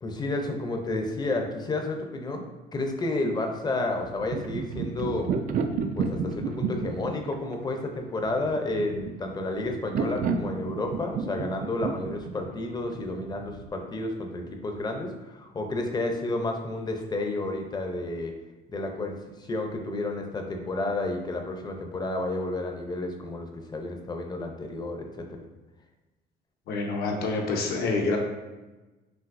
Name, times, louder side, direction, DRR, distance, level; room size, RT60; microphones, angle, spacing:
voice 1, 0.0-2.5 2.7-5.3 6.0-18.3 18.7-25.4, left 2 dB, 25° left, 3 dB, 0.6 m, -31 dB
sound 1, 4.0-13.7, right 5 dB, 55° right, 0.4 m, -31 dB
voice 2, 26.7-28.2, left 3 dB, 70° left, 1 dB, 0.9 m, -27 dB
5.7 x 2.7 x 2.6 m, 1.1 s
cardioid pair, 110°, 17 cm